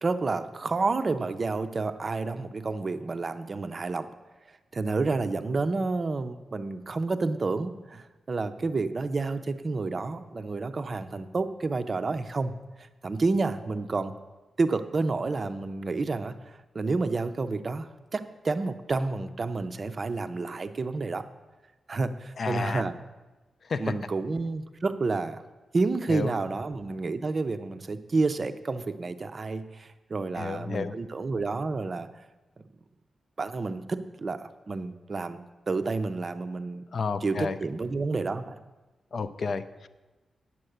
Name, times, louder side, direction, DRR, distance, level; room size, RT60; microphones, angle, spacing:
voice 1, 0.0-4.1 4.7-14.1 14.6-21.2 21.9-22.9 23.8-25.4 25.7-32.1 33.4-36.8 37.2-38.6, right 3 dB, 30° right, 10 dB, 0.6 m, -30 dB
voice 2, 22.4-22.8 23.7-23.9 26.1-26.3 30.4-31.0 36.9-37.6 39.1-39.9, left 4 dB, 45° left, 12 dB, 0.5 m, -31 dB
9.8 x 7.5 x 7.9 m, 1.2 s
wide cardioid pair, 170°, 0 cm